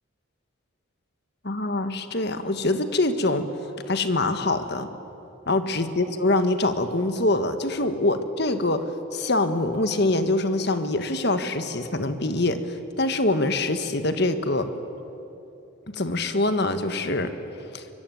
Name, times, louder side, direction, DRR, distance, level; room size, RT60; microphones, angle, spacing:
voice 1, 1.4-3.5 3.9-4.9 5.5-14.7 15.9-17.3 17.7-17.8, left 2 dB, 50° left, 9 dB, 1.5 m, -24 dB
24.5 x 22.5 x 9.3 m, 2.8 s
head